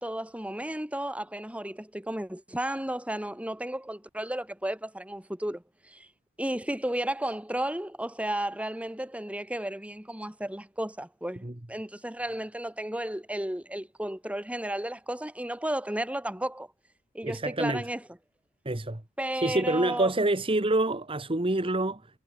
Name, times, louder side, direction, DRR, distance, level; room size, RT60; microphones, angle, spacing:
voice 1, 0.0-6.1 6.4-16.7 17.1-18.0 19.2-20.1, right 1 dB, 5° right, 1.6 m, -33 dB
voice 2, 17.2-17.8 18.6-19.0 19.3-22.0, right 2 dB, 25° right, 1.3 m, -27 dB
head